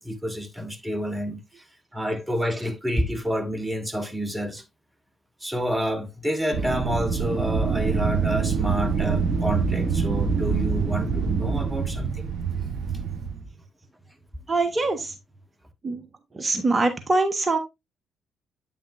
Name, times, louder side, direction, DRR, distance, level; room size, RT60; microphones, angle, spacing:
voice 1, 0.0-1.4 1.9-4.6 5.4-12.3 12.6-12.7, equal, 10° right, 1.4 m, -29 dB
Wind, 6.5-13.5, right 6 dB, 60° right, 1.4 m, -25 dB
voice 2, 14.5-15.1 15.8-16.0 16.3-17.6, right 3 dB, 30° right, 1.3 m, -23 dB
8.7 x 5.9 x 2.6 m
hypercardioid pair, 45°, 0 cm